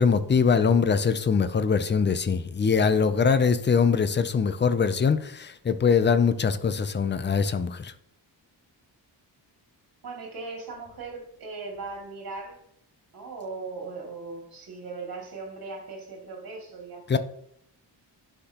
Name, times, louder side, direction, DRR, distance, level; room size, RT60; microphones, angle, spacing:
voice 1, 0.0-7.9 17.1-17.2, left 5 dB, 25° left, 12 dB, 0.4 m, -22 dB
voice 2, 10.0-12.6 13.1-17.2, right 3 dB, 50° right, 0 dB, 2.4 m, -38 dB
10.0 x 5.8 x 2.9 m, 0.69 s
wide cardioid pair, 170°, 45 cm